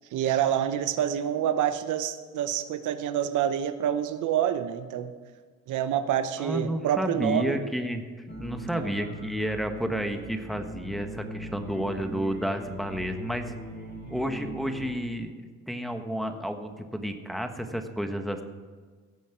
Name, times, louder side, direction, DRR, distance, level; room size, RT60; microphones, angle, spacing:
voice 1, 0.1-5.1 5.7-7.6 8.7-9.0 14.0-14.1, right 10 dB, 85° right, 10 dB, 0.9 m, -27 dB
voice 2, 6.4-8.1 8.4-13.5 14.1-18.4, equal, ahead, 5 dB, 1.4 m, -31 dB
sound 1, 8.3-14.9, equal, 35° left, 2.6 m, -40 dB
17.0 x 7.1 x 6.1 m, 1.5 s
cardioid pair, 90°, 30 cm